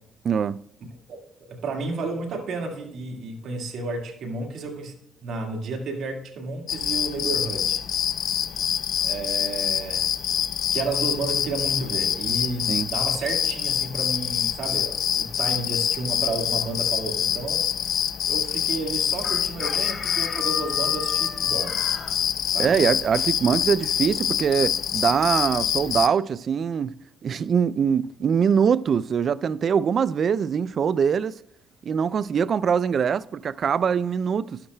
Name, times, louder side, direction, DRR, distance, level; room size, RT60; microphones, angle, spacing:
voice 1, 0.2-0.6 12.7-12.9 22.6-26.9 27.2-31.4 31.8-34.6, right 7 dB, 55° right, 0.3 m, -23 dB
voice 2, 1.5-4.9 5.2-7.8 9.0-10.1 10.7-17.6 18.3-21.8 22.5-22.7, right 3 dB, 70° right, 1.8 m, -31 dB
sound 1, 6.7-26.1, left 9 dB, 70° left, 0.4 m, -26 dB
Chicken rooster, 19.2-22.1, left 5 dB, 40° left, 1.4 m, -36 dB
11.5 x 11.5 x 2.2 m
cardioid pair, 90°, 0 cm